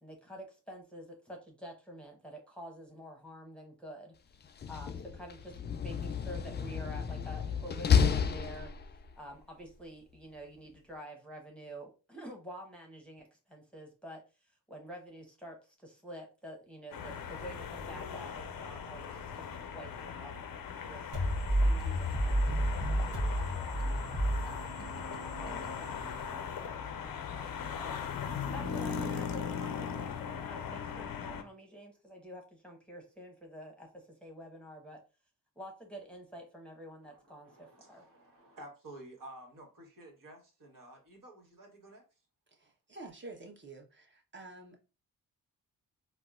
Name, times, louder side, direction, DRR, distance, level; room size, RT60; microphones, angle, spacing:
voice 1, 0.0-4.1 4.5-8.7 9.2-14.2 14.7-20.3 20.8-25.1 25.4-35.0 35.6-38.0, equal, 5° left, 1.1 m, -49 dB
Slam, 4.4-9.2, left 7 dB, 25° left, 0.4 m, -31 dB
sound 1, 16.9-31.4, left 7 dB, 55° left, 0.7 m, -39 dB
sound 2, 21.1-26.8, right 1 dB, 70° right, 1.2 m, -32 dB
voice 2, 37.0-42.0, right 1 dB, 50° right, 1.4 m, -52 dB
voice 3, 42.6-44.8, right 2 dB, 25° right, 1.1 m, -49 dB
4.0 x 2.1 x 2.5 m
hypercardioid pair, 40°, 42 cm